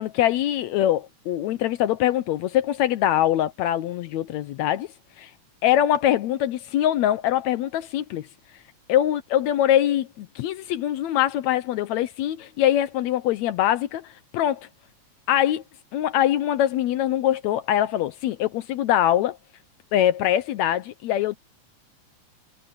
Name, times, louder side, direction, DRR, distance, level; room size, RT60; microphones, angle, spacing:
voice 1, 0.0-4.9 5.2-5.3 5.6-8.3 8.9-14.7 15.3-15.6 15.9-19.4 19.9-21.4, left 12 dB, 75° left, 1.8 m, -23 dB
omnidirectional pair, 3.6 m